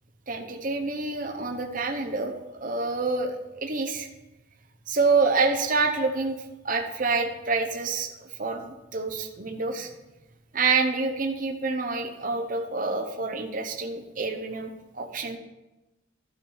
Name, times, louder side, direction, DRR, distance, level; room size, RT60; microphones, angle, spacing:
voice 1, 0.3-2.3 2.6-4.1 4.9-6.4 6.6-9.9 10.5-15.4, right 4 dB, 45° right, 3 dB, 0.9 m, -27 dB
12.0 x 5.1 x 5.5 m, 1.0 s
head